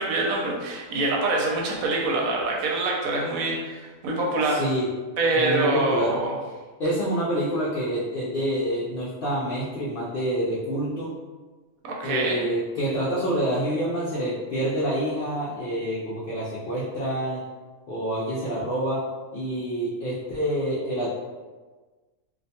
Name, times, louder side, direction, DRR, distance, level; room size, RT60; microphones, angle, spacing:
voice 1, 0.0-4.6 5.2-6.3 11.8-12.4, right 2 dB, 80° right, -1 dB, 1.0 m, -25 dB
voice 2, 4.5-4.9 5.3-6.2 6.8-11.1 12.0-17.4 17.9-19.0 19.3-21.1, equal, 70° left, -8 dB, 0.5 m, -27 dB
2.5 x 2.1 x 2.7 m, 1.3 s
omnidirectional pair, 1.5 m